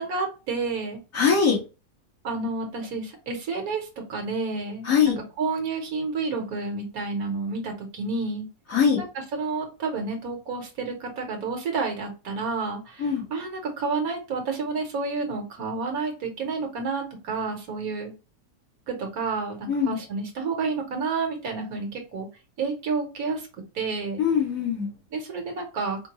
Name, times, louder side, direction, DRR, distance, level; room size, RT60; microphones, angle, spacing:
voice 1, 0.0-1.0 2.2-8.5 9.0-9.1 9.3-18.1 18.9-22.3 22.6-23.4 23.7-24.2 25.1-26.0, right 4 dB, 65° right, 2 dB, 1.4 m, -30 dB
voice 2, 1.1-1.6 4.9-5.2 8.7-9.0 13.0-13.2 19.7-20.0 24.2-24.9, left 6 dB, 55° left, -5 dB, 2.0 m, -22 dB
4.4 x 2.2 x 2.9 m, 0.31 s
omnidirectional pair, 1.7 m